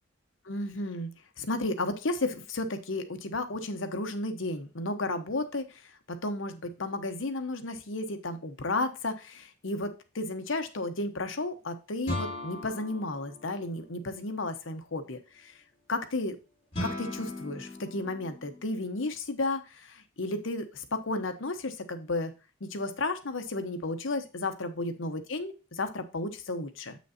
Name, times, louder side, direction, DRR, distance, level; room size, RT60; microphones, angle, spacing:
voice 1, 0.5-1.1 1.4-5.8 6.1-15.5 15.9-16.4 16.8-22.3 22.6-27.0, left 2 dB, 70° left, 8 dB, 1.0 m, -33 dB
sound 1, 12.1-14.1 16.7-18.9, left 1 dB, 25° left, 4.3 m, -38 dB
7.9 x 6.3 x 2.8 m, 0.31 s
head